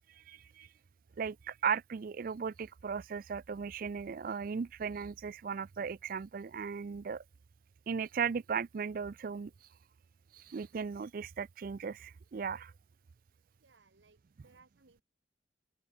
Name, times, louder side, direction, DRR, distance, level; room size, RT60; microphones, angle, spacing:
voice 1, 0.3-0.7 1.2-7.2 7.9-9.5 10.3-12.7, right 6 dB, 50° right, 0.4 m, -37 dB
voice 2, 13.6-15.0, right 4 dB, 75° right, 1.5 m, -64 dB
open air
head